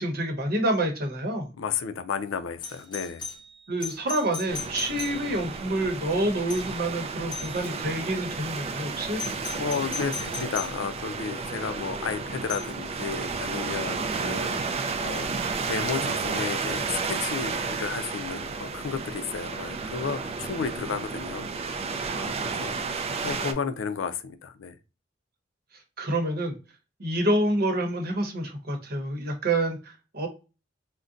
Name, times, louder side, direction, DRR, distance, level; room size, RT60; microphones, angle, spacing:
voice 1, 0.0-1.5 3.7-9.2 26.0-26.6 27.0-30.3, right 1 dB, 55° right, 0.9 m, -27 dB
voice 2, 1.6-3.2 9.6-15.3 15.6-21.9 22.1-24.8, left 6 dB, 80° left, 0.4 m, -33 dB
Doorbell, 2.6-5.6 6.5-6.9 7.3-7.8 9.2-10.8 12.5-12.8 15.2-15.3, left 4 dB, 25° left, 0.6 m, -38 dB
sound 1, 4.5-23.5, right 4 dB, 30° right, 0.4 m, -32 dB
3.8 x 2.1 x 2.4 m
head